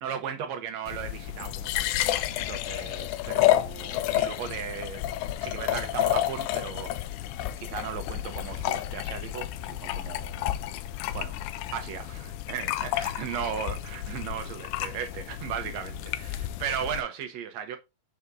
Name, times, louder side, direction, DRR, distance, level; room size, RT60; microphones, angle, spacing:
voice 1, 0.0-5.0 5.4-6.9 7.6-10.5 11.1-11.4 11.7-17.8, right 8 dB, 75° right, 1.6 m, -36 dB
sound 1, 0.9-17.0, left 13 dB, 80° left, 1.8 m, -30 dB
6.6 x 4.9 x 3.6 m
omnidirectional pair, 3.9 m